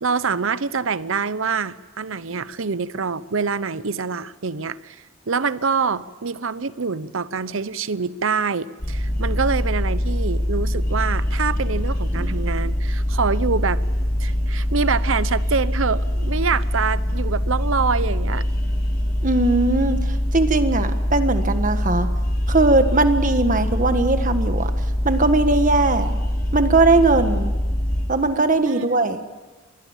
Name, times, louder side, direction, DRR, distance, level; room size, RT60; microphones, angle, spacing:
voice 1, 0.0-13.8 14.2-18.4 28.7-28.9, right 5 dB, 75° right, 16 dB, 0.8 m, -25 dB
sound 1, 8.8-28.1, equal, 50° left, 5.1 m, -23 dB
voice 2, 19.2-22.1 22.5-24.7 25.0-26.1 26.5-27.5 28.1-29.2, right 3 dB, 40° right, 9 dB, 1.6 m, -19 dB
26.5 x 20.5 x 7.3 m, 1.2 s
head